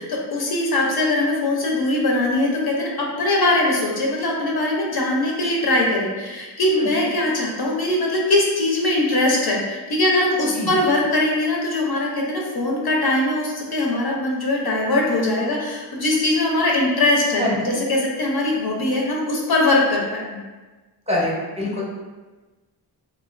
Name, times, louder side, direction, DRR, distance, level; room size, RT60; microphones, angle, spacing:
voice 1, 0.0-20.3, left 2 dB, 65° left, -2 dB, 0.5 m, -21 dB
voice 2, 6.8-7.1 10.5-10.7 17.4-17.8 21.1-21.8, left 1 dB, 15° right, -6 dB, 0.5 m, -25 dB
2.3 x 2.2 x 2.4 m, 1.2 s
wide cardioid pair, 85°, 42 cm